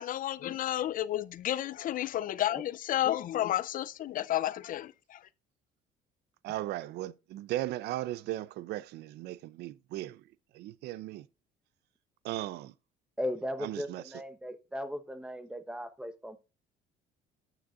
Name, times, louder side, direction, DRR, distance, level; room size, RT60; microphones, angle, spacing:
voice 1, 0.0-5.2, left 12 dB, 55° left, 0.4 m, -31 dB
voice 2, 6.4-10.2 10.5-11.3 12.2-12.7 13.6-14.0, right 15 dB, 80° right, 0.5 m, -37 dB
voice 3, 13.2-16.4, equal, 5° right, 0.9 m, -37 dB
9.3 x 9.0 x 2.4 m
cardioid pair, 110°, 17 cm